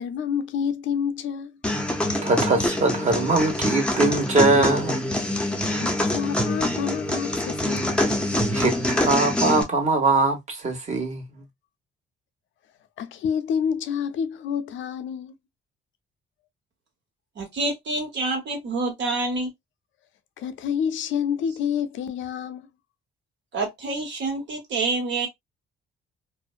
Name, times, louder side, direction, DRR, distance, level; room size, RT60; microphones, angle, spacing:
voice 1, 0.0-1.6 5.7-8.1 13.0-15.3 20.4-22.7, left 7 dB, 75° left, 0.5 m, -28 dB
sound 1, 1.6-9.6, left 1 dB, 5° left, 0.6 m, -25 dB
voice 2, 2.2-5.0 8.5-11.4, right 3 dB, 35° right, 1.1 m, -22 dB
voice 3, 17.4-19.5 23.5-25.3, right 3 dB, 65° right, 1.2 m, -27 dB
2.5 x 2.1 x 2.4 m
cardioid pair, 90°, 20 cm